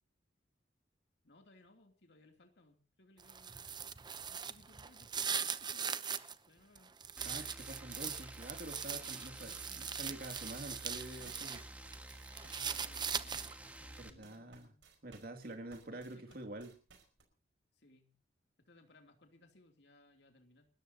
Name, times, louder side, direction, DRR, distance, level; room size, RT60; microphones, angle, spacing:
voice 1, 1.2-6.0 6.5-7.0 9.4-9.8 12.6-14.9 15.9-16.4 17.7-18.1 18.6-20.7, left 2 dB, 65° left, 4 dB, 2.9 m, -64 dB
sound 1, 3.2-6.3 6.8-11.6 11.9-13.7, right 7 dB, 25° right, 0.8 m, -40 dB
sound 2, 7.2-14.1, right 1 dB, 10° right, 1.7 m, -51 dB
voice 2, 7.2-11.7 14.0-14.7 15.0-16.7, right 1 dB, 55° right, 5 dB, 2.6 m, -47 dB
sound 3, 9.5-17.2, right 4 dB, 90° right, 5.3 m, -61 dB
29.5 x 14.0 x 2.9 m, 0.35 s
head